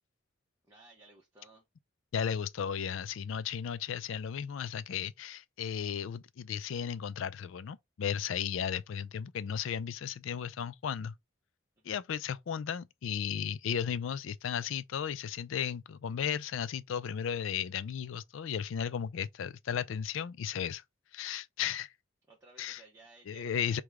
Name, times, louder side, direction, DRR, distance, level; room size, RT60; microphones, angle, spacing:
voice 1, 0.7-1.7 11.8-12.0 22.3-23.8, right 2 dB, 15° right, 0.8 m, -58 dB
voice 2, 2.1-11.2 11.8-20.8 21.1-21.9 22.6-22.8 23.3-23.8, left 8 dB, 80° left, 0.4 m, -35 dB
4.8 x 2.2 x 3.5 m
head